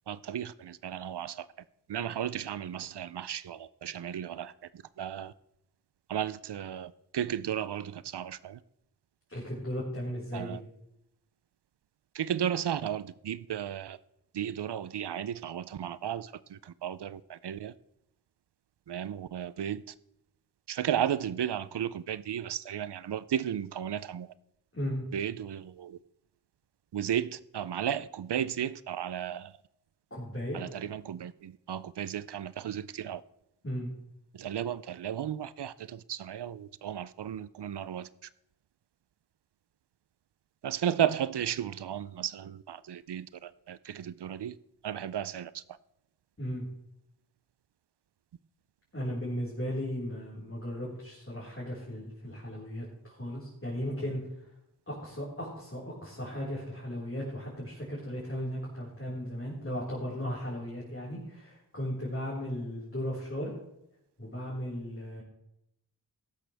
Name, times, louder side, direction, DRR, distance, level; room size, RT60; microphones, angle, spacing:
voice 1, 0.1-1.5 1.9-4.5 5.0-5.3 6.1-8.6 10.3-10.6 12.1-14.0 14.3-17.7 18.9-19.8 20.7-24.3 25.1-26.0 26.9-29.5 30.5-33.2 34.3-38.1 40.6-44.5 44.8-45.6, right 9 dB, 80° right, 0.5 m, -34 dB
voice 2, 9.3-10.6 24.7-25.1 30.1-30.6 33.6-33.9 46.4-46.6 48.9-54.2 54.9-63.5 64.2-65.2, equal, 30° left, 4.5 m, -36 dB
15.0 x 12.0 x 3.4 m
wide cardioid pair, 50°, 40 cm